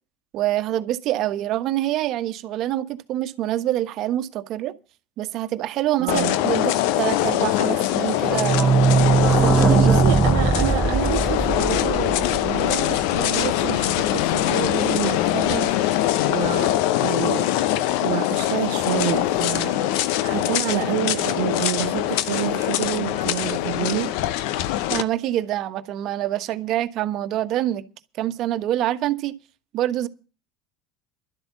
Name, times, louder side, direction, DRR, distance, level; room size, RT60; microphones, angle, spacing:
voice 1, 0.3-4.7 5.2-8.7 9.3-10.2 24.9-27.8 28.2-29.4 29.7-30.1, right 13 dB, 55° right, 1.2 m, -26 dB
voice 2, 6.0-6.4 9.7-17.5 18.0-19.9 20.2-24.2, right 16 dB, 70° right, 0.6 m, -29 dB
sound 1, 6.1-25.0, left 13 dB, 65° left, 0.8 m, -23 dB
sound 2, 7.9-13.5 13.8-13.9 14.0-14.1 14.4-14.5, right 5 dB, 25° right, 0.9 m, -20 dB
12.0 x 8.0 x 8.4 m
hypercardioid pair, 80°, 0 cm